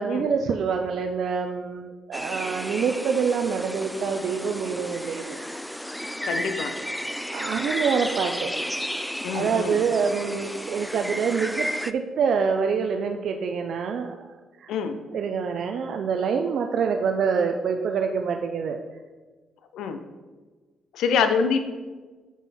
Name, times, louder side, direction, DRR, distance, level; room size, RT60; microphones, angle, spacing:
voice 1, 0.0-5.4 7.0-8.8 9.3-14.3 14.6-14.7 15.1-18.8, right 6 dB, 65° right, 5 dB, 0.5 m, -26 dB
sound 1, 2.1-11.9, equal, ahead, 0.3 m, -33 dB
voice 2, 6.2-6.7 9.2-9.8 14.7-15.0 19.7-20.0 20.9-21.6, left 5 dB, 85° left, 8 dB, 0.7 m, -25 dB
7.0 x 6.1 x 4.2 m, 1.3 s
cardioid pair, 90°, 0 cm